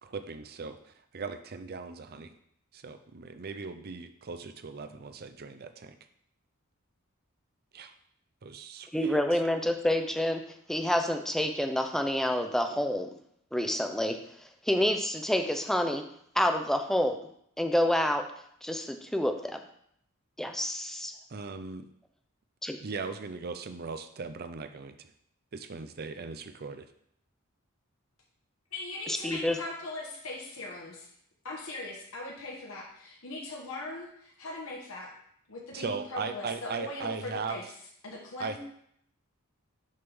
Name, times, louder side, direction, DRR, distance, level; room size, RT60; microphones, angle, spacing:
voice 1, 0.0-2.3 2.7-6.0 7.7-7.9 8.4-9.4 21.3-21.9 22.8-25.1 25.5-26.8 35.7-37.6 38.4-38.6, right 4 dB, 45° right, 9 dB, 0.5 m, -38 dB
voice 2, 8.9-10.4 10.7-13.1 13.5-14.2 14.7-16.0 16.4-17.2 17.6-18.2 18.6-19.6 20.4-21.1 22.6-22.8 29.1-29.6, left 1 dB, ahead, 5 dB, 0.5 m, -28 dB
voice 3, 28.7-31.1 31.4-35.1 35.5-37.6 38.0-38.6, left 2 dB, 70° left, -3 dB, 1.4 m, -40 dB
6.4 x 3.7 x 6.1 m, 0.69 s
head